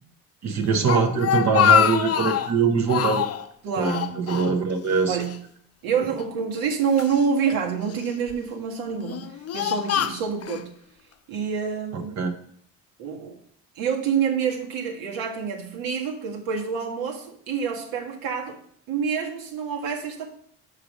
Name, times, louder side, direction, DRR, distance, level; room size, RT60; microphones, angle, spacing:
voice 1, 0.4-3.3 3.8-5.2 12.2-12.3, right 5 dB, 50° right, 5 dB, 1.1 m, -22 dB
Speech, 0.6-2.5 2.9-3.4 3.8-4.9 5.2-5.4 6.2-7.2 7.9-8.3 8.9-10.6, left 9 dB, 45° left, 0.6 m, -24 dB
voice 2, 3.6-4.1 5.1-5.4 5.8-10.7 11.3-12.2 13.0-13.4 13.7-18.6 18.9-20.3, right 6 dB, 75° right, 1 dB, 1.6 m, -27 dB
5.1 x 4.8 x 6.3 m, 0.65 s
supercardioid pair, 80°, 36 cm